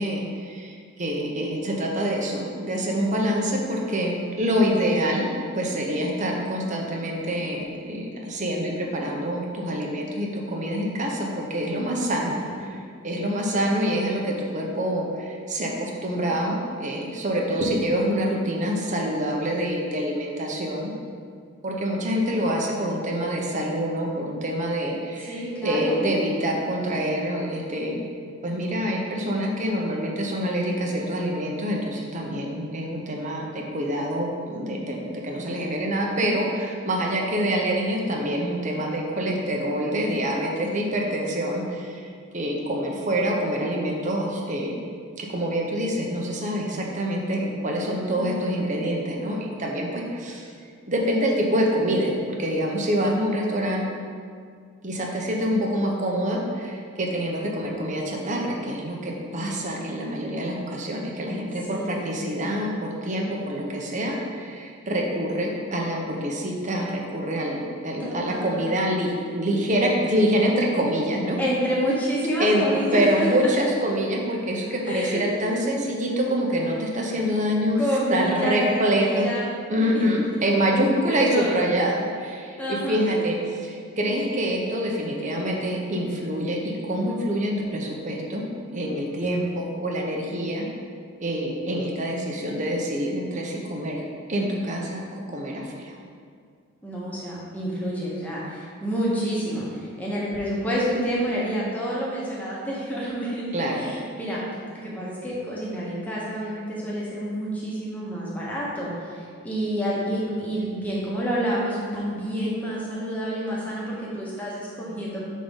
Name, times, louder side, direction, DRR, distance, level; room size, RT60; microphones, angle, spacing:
voice 1, 0.0-20.9 21.6-28.1 28.4-42.1 42.3-44.8 45.2-50.5 50.9-53.8 54.8-71.4 72.4-72.6 72.9-77.8 78.1-79.3 79.7-88.4 88.7-90.7 91.2-95.0 95.3-96.0 103.5-103.9, equal, 35° right, -1 dB, 0.7 m, -26 dB
voice 2, 25.3-26.1 48.1-48.6 61.7-62.2 68.0-68.9 71.4-73.5 74.8-75.2 77.7-79.5 79.8-80.1 81.1-81.6 82.6-83.0 85.2-85.4 96.8-104.4 104.7-115.2, equal, 5° left, -6 dB, 1.1 m, -28 dB
5.3 x 3.7 x 5.4 m, 2.1 s
head